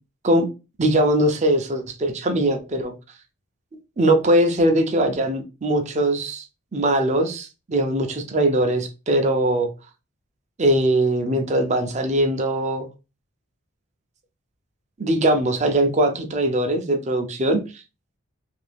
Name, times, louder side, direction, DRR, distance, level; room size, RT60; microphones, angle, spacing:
voice 1, 0.8-2.9 4.0-6.4 6.7-9.7 10.6-12.9 15.0-17.8, right 1 dB, 35° right, 0.5 m, -21 dB
2.7 x 2.6 x 3.3 m
head